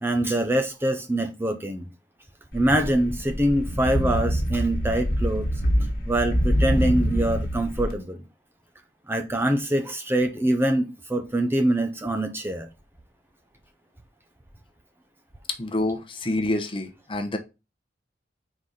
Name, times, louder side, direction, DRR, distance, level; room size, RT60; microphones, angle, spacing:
voice 1, 0.0-1.9 2.5-5.4 6.1-8.2 9.1-12.7, right 1 dB, 10° right, 0.6 m, -24 dB
sound 1, 2.5-7.9, equal, 50° left, 1.5 m, -25 dB
voice 2, 15.6-17.4, left 1 dB, 30° left, 0.9 m, -27 dB
4.8 x 3.9 x 5.6 m
head